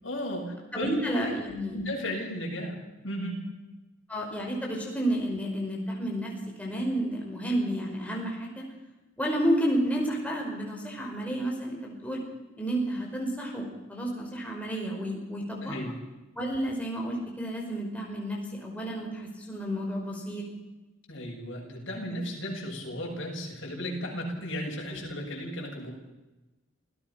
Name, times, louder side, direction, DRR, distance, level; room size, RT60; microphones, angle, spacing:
voice 1, 0.0-1.3 1.7-2.7 3.0-3.4 15.6-16.0 21.1-25.9, equal, 65° left, -1 dB, 7.4 m, -35 dB
voice 2, 0.7-1.8 4.1-6.3 6.6-8.7 9.2-12.2 12.6-15.8 16.4-20.4, right 1 dB, 5° left, -1 dB, 5.3 m, -31 dB
27.5 x 16.5 x 5.9 m, 1.1 s
head